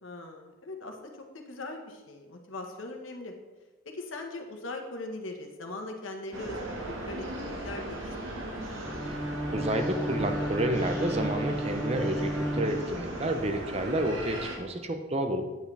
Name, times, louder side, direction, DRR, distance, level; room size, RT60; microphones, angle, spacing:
voice 1, 0.0-1.0 1.3-3.3 3.9-8.6, left 2 dB, 85° left, 3 dB, 1.3 m, -40 dB
sound 1, 6.3-14.6, right 1 dB, 85° right, 1.7 m, -37 dB
Bowed string instrument, 8.8-13.4, right 1 dB, ahead, 0.5 m, -33 dB
voice 2, 9.5-15.4, right 1 dB, 30° right, 5 dB, 0.7 m, -30 dB
9.1 x 8.6 x 3.4 m, 1.2 s
head